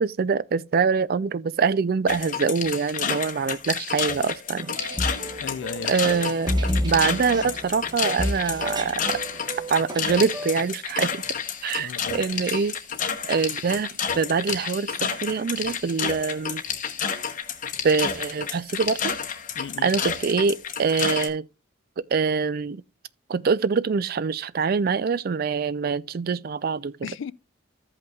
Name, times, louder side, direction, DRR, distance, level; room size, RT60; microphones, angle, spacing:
voice 1, 0.0-4.8 5.9-6.5 6.8-9.2 9.7-11.2 11.6-12.8 13.3-16.6 17.8-19.1 19.8-21.4 22.0-22.8 23.3-26.9, right 5 dB, 50° right, 0.4 m, -24 dB
sound 1, 2.1-21.3, left 7 dB, 40° left, 0.8 m, -30 dB
sound 2, 4.5-10.5, equal, 20° right, 1.0 m, -31 dB
voice 2, 5.4-5.9 11.8-12.2 19.6-19.9 27.0-27.3, left 6 dB, 65° left, 0.3 m, -35 dB
15.0 x 5.4 x 2.3 m
head